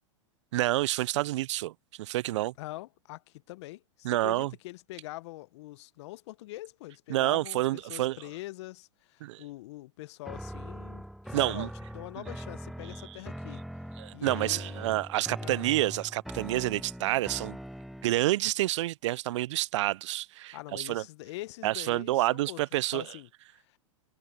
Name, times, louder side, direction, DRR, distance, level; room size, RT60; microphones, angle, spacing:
voice 1, 0.5-2.5 4.0-4.5 7.1-8.2 9.2-9.4 11.3-11.7 14.0-17.6 18.0-21.0 21.6-23.0, right 16 dB, 65° right, 0.4 m, -28 dB
voice 2, 2.6-13.6 14.1-15.0 15.4-15.7 20.5-22.6 22.9-23.8, left 18 dB, 60° left, 0.8 m, -44 dB
sound 1, 10.2-18.3, equal, ahead, 1.1 m, -41 dB
hypercardioid pair, 110°, 16 cm